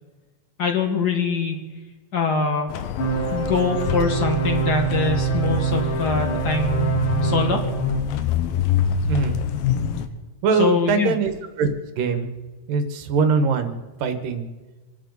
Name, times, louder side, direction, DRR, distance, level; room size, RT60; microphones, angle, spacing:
voice 1, 0.6-1.6 2.1-2.7 3.3-6.9 7.2-7.6 10.6-11.2, left 5 dB, 45° left, 3 dB, 1.4 m, -23 dB
sound 1, 2.7-10.1, left 8 dB, 85° left, 2.7 m, -26 dB
sound 2, 3.0-8.0, right 7 dB, 65° left, 3.5 m, -25 dB
voice 2, 9.1-9.4 10.4-11.3 11.6-11.7 12.0-12.3 12.7-14.5, right 5 dB, 70° right, 7 dB, 2.9 m, -22 dB
27.5 x 12.5 x 4.1 m, 1.2 s
omnidirectional pair, 4.2 m